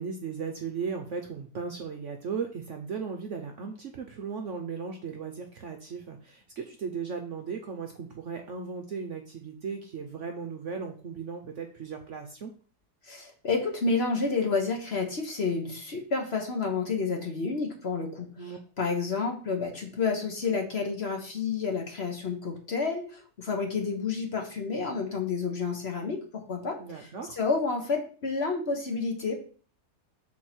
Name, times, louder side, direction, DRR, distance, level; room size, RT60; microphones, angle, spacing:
voice 1, 0.0-12.5 18.4-18.6 26.8-27.4, right 5 dB, 60° right, 4 dB, 0.9 m, -36 dB
voice 2, 13.0-18.3 18.8-29.3, left 4 dB, 45° left, 2 dB, 1.2 m, -30 dB
6.3 x 4.2 x 4.4 m, 0.41 s
omnidirectional pair, 1.8 m